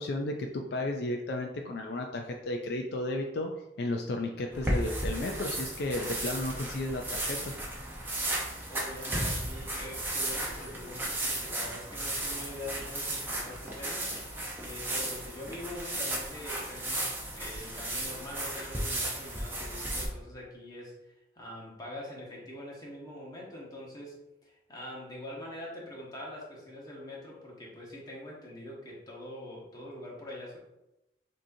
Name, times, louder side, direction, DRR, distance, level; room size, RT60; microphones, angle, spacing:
voice 1, 0.0-7.5, left 1 dB, 60° left, 2 dB, 0.4 m, -33 dB
sound 1, 4.5-20.1, right 1 dB, 10° right, 0.7 m, -34 dB
voice 2, 8.7-20.9 21.3-30.6, left 1 dB, 20° left, -4 dB, 1.1 m, -44 dB
6.1 x 2.8 x 2.6 m, 0.91 s
head